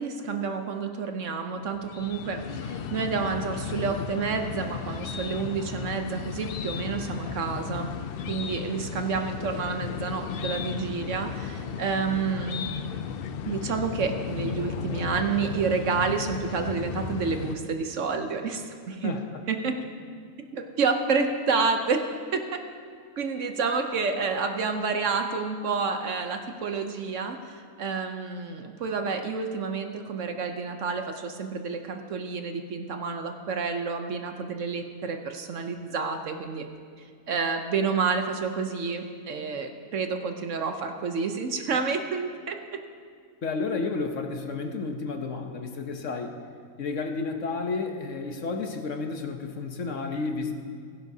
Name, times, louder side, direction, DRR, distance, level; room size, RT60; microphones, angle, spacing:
voice 1, 0.0-7.9 8.2-12.7 13.4-19.1 19.5-19.8 20.5-22.0 22.3-22.6 23.2-36.7 37.3-42.6, right 5 dB, 60° right, 5 dB, 1.0 m, -29 dB
sound 1, 1.7-17.6, left 7 dB, 80° left, 0.5 m, -35 dB
voice 2, 43.4-46.3 46.8-50.5, left 4 dB, 60° left, 5 dB, 1.1 m, -31 dB
16.5 x 15.5 x 2.7 m, 2.1 s
omnidirectional pair, 1.6 m